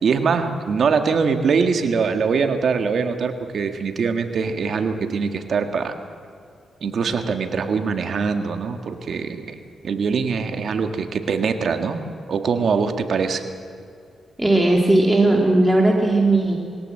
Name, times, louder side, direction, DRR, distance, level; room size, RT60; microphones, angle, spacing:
voice 1, 0.0-5.9 6.8-9.6 9.8-12.0 12.3-13.4, right 5 dB, 65° right, 6 dB, 1.7 m, -22 dB
voice 2, 14.4-16.6, right 2 dB, 10° right, -1 dB, 2.5 m, -17 dB
22.0 x 17.5 x 7.8 m, 2.3 s
cardioid pair, 75°, 0 cm